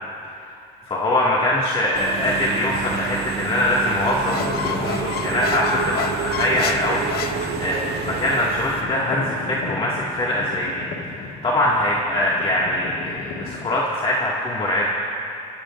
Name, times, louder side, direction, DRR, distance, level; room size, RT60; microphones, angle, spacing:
voice 1, 0.9-14.9, left 1 dB, 35° left, -5 dB, 2.0 m, -23 dB
Engine / Mechanisms, 2.0-8.8, right 6 dB, 70° right, 1.7 m, -29 dB
Squeak, 4.0-8.0, left 9 dB, 65° left, 0.7 m, -31 dB
sound 1, 4.1-13.7, left 3 dB, 80° left, 1.9 m, -35 dB
26.0 x 17.0 x 2.5 m, 2.5 s
cardioid pair, 110°, 17 cm